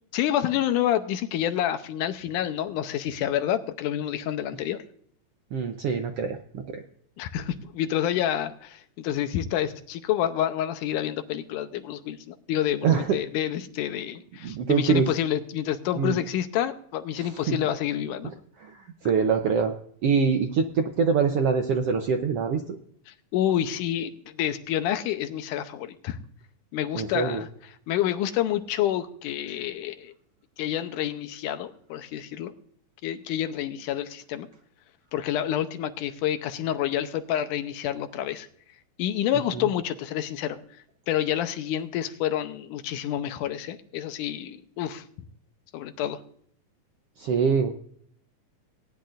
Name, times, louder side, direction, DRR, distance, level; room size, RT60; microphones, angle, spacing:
voice 1, 0.1-4.8 7.2-18.3 23.1-26.2 26.7-27.5 27.9-30.1 30.6-32.5 33.0-34.5 35.1-38.5 39.0-40.6 41.1-45.0 45.7-46.2, left 11 dB, 85° left, 9 dB, 2.3 m, -28 dB
voice 2, 5.5-6.8 12.8-13.2 14.4-15.1 15.9-16.2 17.1-17.6 18.6-19.7 20.0-22.6 26.9-27.4 39.5-39.7 47.2-47.7, right 6 dB, 75° right, 5 dB, 1.4 m, -24 dB
19.0 x 10.5 x 2.5 m, 0.62 s
omnidirectional pair, 3.7 m